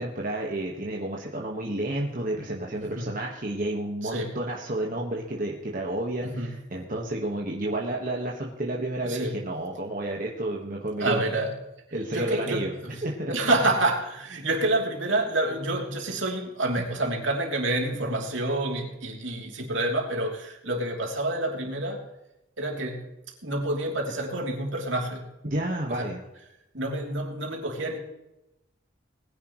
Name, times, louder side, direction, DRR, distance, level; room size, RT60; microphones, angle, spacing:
voice 1, 0.0-11.2 11.9-12.7 13.0-13.3 25.4-26.2, right 1 dB, 45° right, -1 dB, 1.6 m, -31 dB
voice 2, 4.0-4.3 6.2-6.6 9.0-9.4 11.0-11.5 12.1-22.0 22.6-23.1 23.4-25.3 25.9-26.1 26.7-28.0, right 2 dB, 70° right, 1 dB, 3.2 m, -28 dB
20.5 x 10.5 x 3.2 m, 0.91 s
head